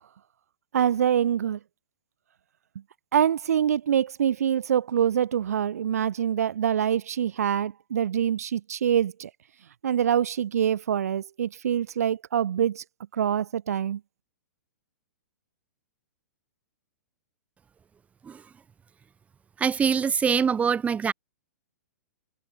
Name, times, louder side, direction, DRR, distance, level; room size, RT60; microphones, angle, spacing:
voice 1, 0.7-1.6 3.1-9.3 9.8-12.8 13.1-14.0, right 9 dB, 60° right, 2.1 m, -25 dB
voice 2, 19.6-21.1, right 6 dB, 15° right, 3.2 m, -24 dB
figure-of-eight pair, 110°, 9 cm